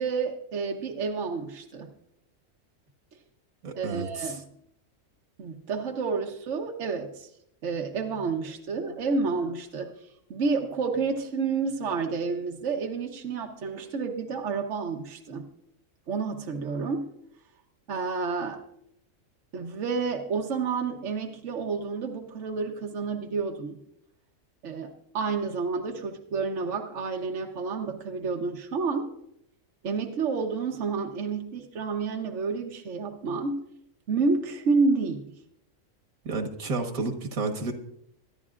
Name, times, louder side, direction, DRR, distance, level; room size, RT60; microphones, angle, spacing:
voice 1, 0.0-1.9 3.8-4.4 5.4-7.3 7.6-10.0 10.3-15.5 16.1-17.1 17.9-18.6 19.5-23.8 24.6-29.1 29.8-33.7 34.1-35.2, right 4 dB, 65° right, 2 dB, 1.3 m, -29 dB
voice 2, 3.6-4.4 36.3-37.7, right 3 dB, 85° right, 3 dB, 1.8 m, -31 dB
23.5 x 11.0 x 2.5 m, 0.73 s
omnidirectional pair, 1.4 m